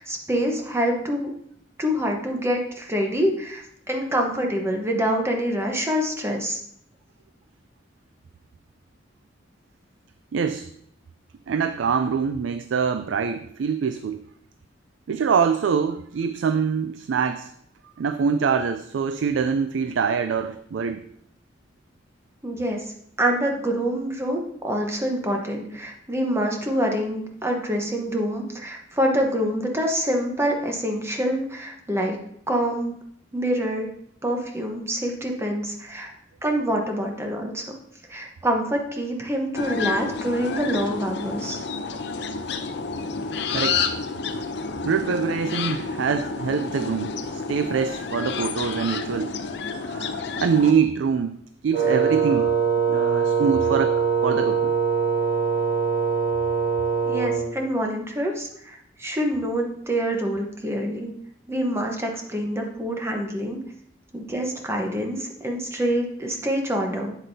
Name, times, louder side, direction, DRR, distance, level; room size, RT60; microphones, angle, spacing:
voice 1, 0.0-1.3 1.8-6.6 22.4-22.9 23.2-32.2 32.5-32.9 33.3-33.9 34.2-36.1 36.4-37.6 38.1-41.6 57.0-61.1 61.5-63.6 64.1-67.1, equal, 15° right, 2 dB, 1.0 m, -26 dB
voice 2, 10.3-10.7 11.5-14.3 15.1-17.5 18.0-21.0 43.5-43.8 44.8-49.4 49.7-51.4 51.6-54.8, right 6 dB, 85° right, 9 dB, 0.4 m, -24 dB
sound 1, 39.5-50.7, left 5 dB, 65° left, 0.6 m, -30 dB
Wind instrument woodwind instrument, 51.7-57.5, right 6 dB, 50° right, 3.5 m, -22 dB
8.0 x 7.5 x 2.7 m, 0.68 s
head